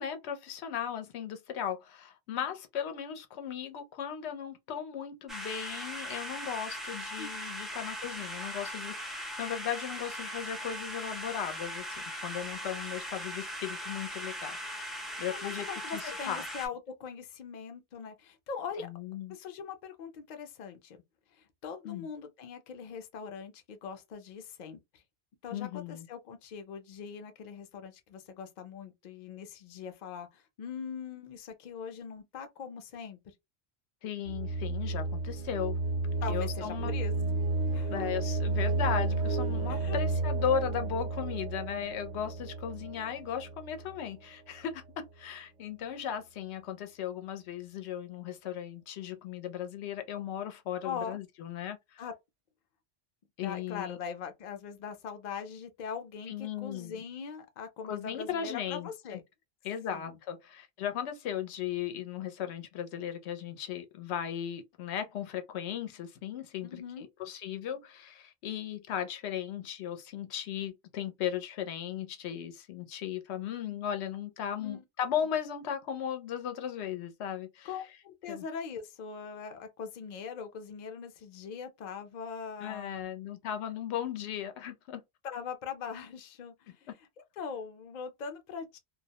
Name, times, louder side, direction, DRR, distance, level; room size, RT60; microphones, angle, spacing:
voice 1, 0.0-14.9 15.2-15.7 15.9-16.4 18.8-19.4 21.8-22.1 25.5-26.1 34.0-35.8 36.3-36.9 37.9-52.0 53.4-54.0 56.3-57.0 57.8-59.2 59.6-77.7 78.3-78.4 82.6-85.0, left 9 dB, 85° left, 0.8 m, -36 dB
sound 1, 5.3-16.7, equal, ahead, 0.3 m, -39 dB
voice 2, 15.2-18.9 19.3-21.0 21.3-25.0 25.4-33.2 36.2-37.1 37.7-38.1 39.7-40.0 50.8-51.2 52.0-52.1 53.4-59.2 59.9-60.2 66.6-67.1 74.6-74.8 77.6-83.1 85.2-86.9 87.4-88.8, left 6 dB, 55° left, 0.6 m, -41 dB
sound 2, 34.3-44.1, right 3 dB, 55° right, 0.5 m, -32 dB
2.3 x 2.0 x 2.7 m
omnidirectional pair, 1.1 m